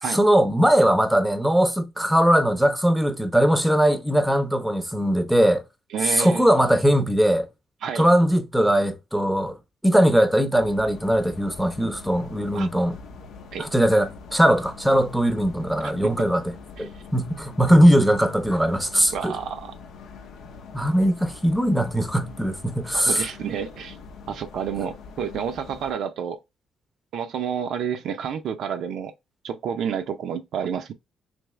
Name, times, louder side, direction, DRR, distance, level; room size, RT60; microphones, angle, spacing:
voice 1, 0.1-5.6 6.1-7.5 8.0-9.5 9.8-13.0 13.6-16.4 16.8-19.3 20.7-23.2, equal, 5° right, 0.7 m, -20 dB
voice 2, 5.9-6.5 7.8-8.1 12.5-12.7 13.5-13.7 15.8-16.1 19.1-19.7 23.1-24.0 24.3-26.4 27.1-29.1 29.4-30.9, right 7 dB, 75° right, 0.5 m, -29 dB
sound 1, 10.5-25.9, left 5 dB, 80° left, 0.7 m, -43 dB
3.4 x 2.9 x 3.1 m
cardioid pair, 90°, 0 cm